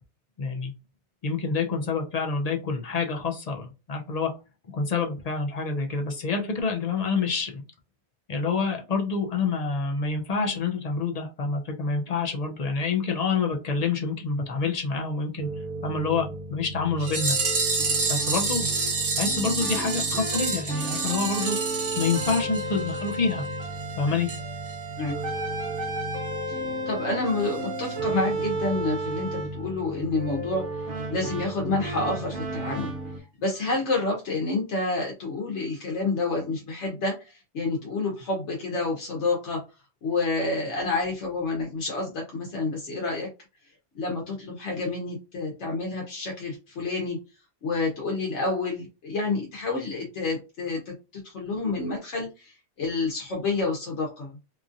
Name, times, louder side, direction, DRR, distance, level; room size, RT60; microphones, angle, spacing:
voice 1, 0.4-0.7 1.2-4.3 4.7-7.6 8.3-15.5 15.8-17.4 18.1-18.7 19.2-21.6 22.0-23.4 23.9-24.3, left 4 dB, 45° left, 2 dB, 0.5 m, -27 dB
sound 1, 15.4-33.2, right 2 dB, 80° right, 1.0 m, -33 dB
sound 2, 17.0-23.2 23.4-23.5 23.8-23.9 24.3-24.4 24.7-24.8, right 4 dB, 65° right, 1.2 m, -28 dB
voice 2, 26.5-32.9 33.4-39.6 40.0-43.3 43.9-47.2 47.6-54.3, left 3 dB, 75° left, 0 dB, 1.1 m, -29 dB
2.9 x 2.5 x 2.5 m, 0.29 s
omnidirectional pair, 1.2 m